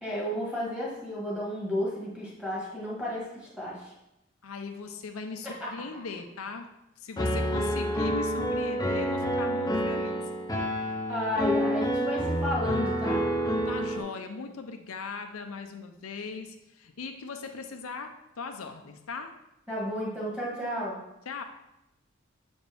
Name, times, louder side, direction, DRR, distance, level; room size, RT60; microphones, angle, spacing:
voice 1, 0.0-3.9 5.4-5.9 10.9-13.2 19.7-21.0, left 1 dB, 5° right, -6 dB, 1.7 m, -32 dB
voice 2, 4.4-6.7 7.0-10.2 13.7-19.3 21.3-21.4, left 4 dB, 90° left, 5 dB, 0.6 m, -39 dB
Piano, 7.2-14.0, equal, 20° left, 0.7 m, -28 dB
6.9 x 4.3 x 3.4 m, 0.89 s
head